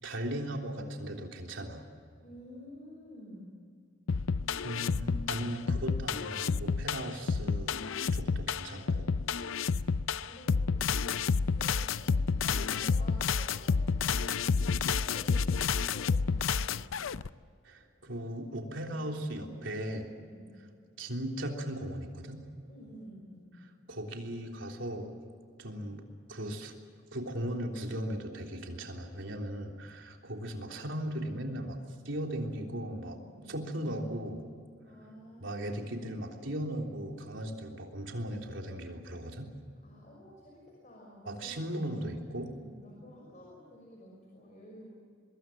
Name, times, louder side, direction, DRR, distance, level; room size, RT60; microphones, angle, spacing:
voice 1, 0.0-1.8 4.6-7.7 8.1-9.1 17.6-20.1 21.0-22.4 23.9-25.1 25.6-26.0 26.3-26.7 27.1-31.8 32.1-33.2 33.5-34.4 35.4-39.5 41.3-42.5, right 1 dB, 75° right, 2 dB, 3.5 m, -37 dB
voice 2, 2.2-3.6 10.1-14.6 14.9-16.9 20.3-20.5 22.7-23.5 33.3-33.5 34.8-36.0 39.8-44.9, equal, 35° left, -2 dB, 5.7 m, -52 dB
sound 1, 4.1-17.3, left 5 dB, 85° left, 0.5 m, -30 dB
24.5 x 22.0 x 7.5 m, 2.3 s
head